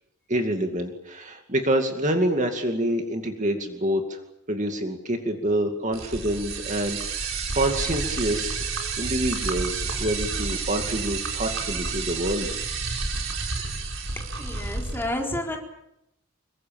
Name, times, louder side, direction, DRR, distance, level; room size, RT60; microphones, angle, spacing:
voice 1, 0.3-4.2 4.5-12.5, right 1 dB, 35° right, 4 dB, 2.4 m, -27 dB
sound 1, 5.9-15.0, right 4 dB, 65° right, 5.5 m, -30 dB
voice 2, 14.2-15.6, left 1 dB, 10° left, 0 dB, 4.1 m, -31 dB
25.5 x 23.5 x 7.2 m, 0.82 s
head